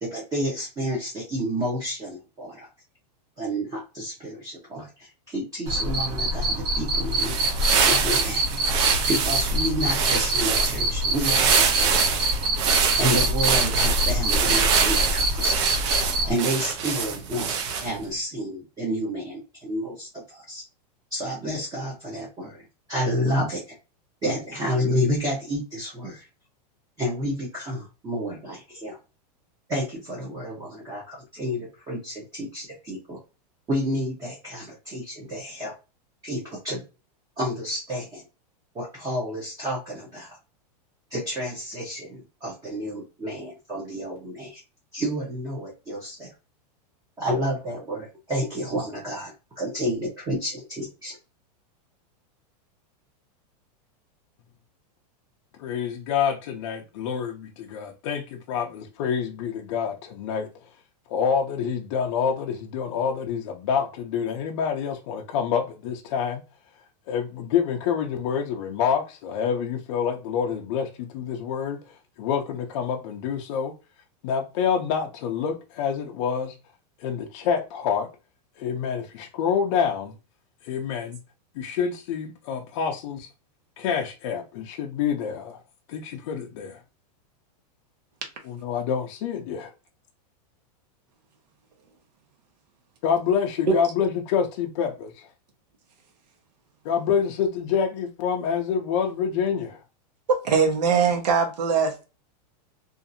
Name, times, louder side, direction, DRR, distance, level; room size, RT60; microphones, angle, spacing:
voice 1, 0.0-2.7 3.4-7.4 7.8-8.5 9.1-12.2 13.0-15.6 16.2-17.5 17.8-20.6 21.1-23.7 24.2-26.3 27.0-29.0 29.7-33.2 33.7-35.7 36.2-36.8 37.4-38.2 38.7-40.4 41.1-44.6 44.9-46.3 47.2-51.2, equal, 15° right, 0.8 m, -30 dB
Cricket, 5.7-16.3, right 1 dB, 65° right, 1.2 m, -25 dB
sound 1, 7.0-18.0, right 6 dB, 45° right, 0.5 m, -25 dB
voice 2, 55.6-60.5 61.1-66.4 67.1-71.8 72.2-73.7 74.2-76.5 77.0-78.1 78.6-80.1 80.6-81.2 81.6-83.3 83.8-85.6 85.9-86.8 88.4-89.7 93.0-95.3 96.8-99.8, left 7 dB, 45° left, 0.5 m, -27 dB
voice 3, 100.3-102.0, right 5 dB, 80° right, 0.9 m, -21 dB
2.7 x 2.5 x 2.5 m
supercardioid pair, 160°, 21 cm